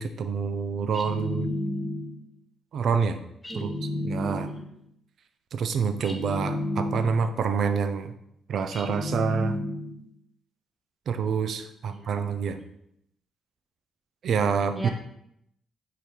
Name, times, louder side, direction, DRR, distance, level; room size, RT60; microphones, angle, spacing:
voice 1, 0.0-1.5 2.7-3.2 3.5-3.7 4.0-4.5 5.5-8.1 8.5-9.6 11.1-12.6 14.2-14.9, right 6 dB, 65° right, 9 dB, 0.6 m, -27 dB
sound 1, 0.9-2.3 3.4-4.8 6.0-7.4 8.7-10.1, left 1 dB, 15° left, 1.0 m, -32 dB
voice 2, 3.5-4.0 4.3-4.7 11.8-12.0 14.7-14.9, right 1 dB, 20° right, 0 dB, 1.6 m, -39 dB
4.8 x 4.4 x 5.2 m, 0.75 s
cardioid pair, 90°, 0 cm